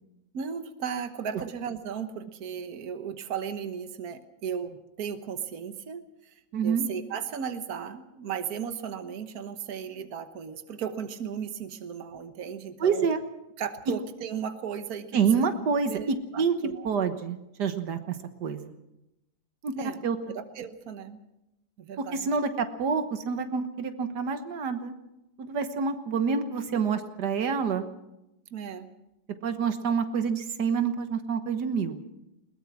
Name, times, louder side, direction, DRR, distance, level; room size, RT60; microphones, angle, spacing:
voice 1, 0.3-6.3 6.6-13.1 13.6-15.2 15.9-16.9 19.7-20.0 20.3-21.2 21.8-22.3 28.5-28.9, right 7 dB, 65° right, 9 dB, 1.7 m, -36 dB
voice 2, 6.5-6.9 12.8-13.2 15.1-18.7 19.6-19.7 20.0-20.2 22.0-24.9 25.4-27.9 29.4-32.0, right 6 dB, 85° right, 8 dB, 1.8 m, -27 dB
21.5 x 19.5 x 6.1 m, 0.90 s
omnidirectional pair, 1.8 m